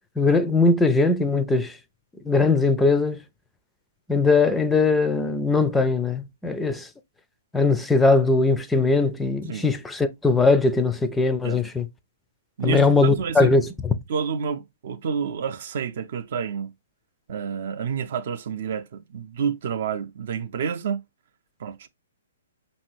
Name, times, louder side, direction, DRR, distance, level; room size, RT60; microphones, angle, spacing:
voice 1, 0.2-1.8 2.2-3.2 4.1-6.9 7.5-11.9 12.6-13.9, left 3 dB, 10° left, 0.4 m, -20 dB
voice 2, 12.6-13.5 14.1-16.7 17.3-21.0 21.6-21.9, right 6 dB, 55° right, 0.4 m, -29 dB
5.3 x 2.6 x 3.0 m
figure-of-eight pair, 125°, 0 cm